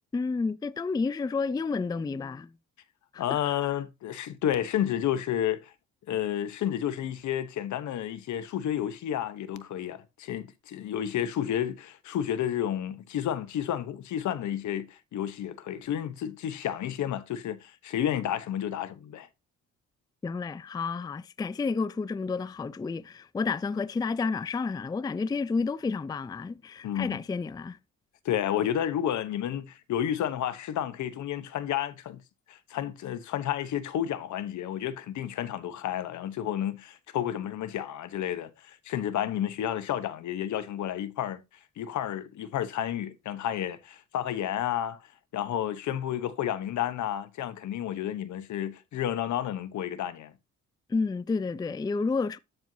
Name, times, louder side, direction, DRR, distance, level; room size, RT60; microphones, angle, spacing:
voice 1, 0.1-2.5 3.1-3.4 20.2-27.8 50.9-52.4, left 4 dB, 15° left, 0.4 m, -30 dB
voice 2, 3.2-5.7 6.1-19.3 26.8-27.2 28.2-32.2 32.5-41.4 41.8-45.0 45.3-50.3, left 10 dB, 70° left, 1.0 m, -31 dB
13.5 x 4.6 x 2.7 m
cardioid pair, 90°, 30 cm